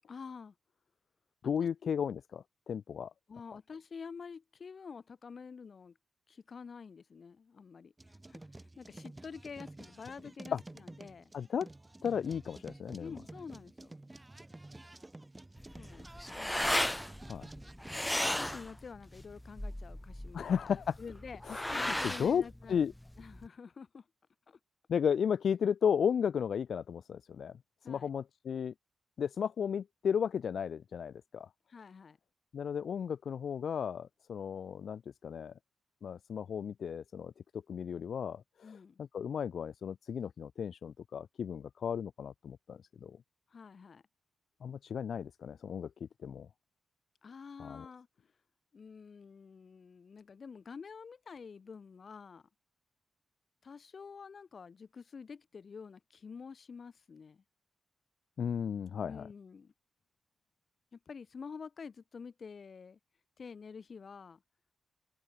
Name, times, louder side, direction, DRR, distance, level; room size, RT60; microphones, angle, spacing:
voice 1, 0.1-0.5 3.3-6.0 6.3-11.3 13.0-14.0 15.8-16.1 16.4-16.6 17.9-20.5 21.0-24.1 24.5-24.6 27.8-28.1 31.7-32.2 38.6-39.0 43.5-44.0 47.2-48.1 48.7-52.5 53.6-57.4 59.0-59.7 60.9-63.0 63.4-64.4, left 5 dB, 50° left, 7.0 m, -48 dB
voice 2, 1.4-3.1 10.5-10.6 11.3-11.7 12.0-13.1 17.3-17.5 20.3-21.0 21.5-22.4 22.7-22.9 24.9-27.6 27.9-28.7 29.2-31.5 32.5-35.5 36.0-38.7 39.0-43.2 44.6-46.5 47.6-47.8 58.4-59.3, left 7 dB, 70° left, 3.5 m, -34 dB
sound 1, 8.0-18.7, right 2 dB, 15° right, 5.5 m, -51 dB
sound 2, 15.6-23.5, left 1 dB, 5° left, 3.2 m, -36 dB
open air
cardioid pair, 95°, 0 cm